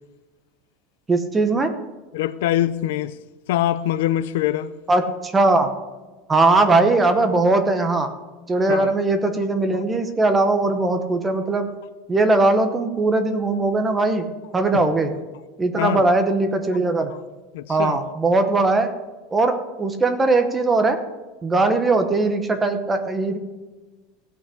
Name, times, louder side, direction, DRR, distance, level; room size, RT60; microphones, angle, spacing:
voice 1, 1.1-1.7 4.9-5.7 6.3-8.1 8.5-11.7 12.1-14.3 14.5-15.1 15.6-17.1 17.7-18.9 19.3-21.0 21.4-23.4, right 2 dB, 10° right, 0.9 m, -19 dB
voice 2, 2.1-3.2 3.5-4.8 8.7-8.9 14.7-14.8 15.8-16.1 17.5-18.0, left 13 dB, 65° left, 0.5 m, -23 dB
16.0 x 5.8 x 8.3 m
supercardioid pair, 180°, 0 cm